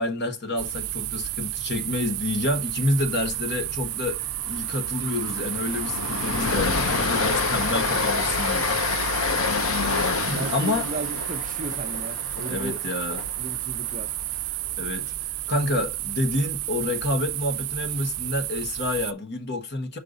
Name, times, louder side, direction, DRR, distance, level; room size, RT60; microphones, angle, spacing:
voice 1, 0.0-8.7 10.3-10.9 12.5-13.2 14.8-20.0, left 2 dB, 50° left, 1.3 m, -28 dB
sound 1, 0.6-19.1, right 16 dB, 85° right, 0.4 m, -31 dB
Train, 3.0-3.3 3.5-3.7 4.1-14.2, left 5 dB, 75° left, 0.8 m, -28 dB
voice 2, 10.2-12.8 13.4-14.2, right 2 dB, 40° right, 0.7 m, -35 dB
5.6 x 5.2 x 3.9 m
head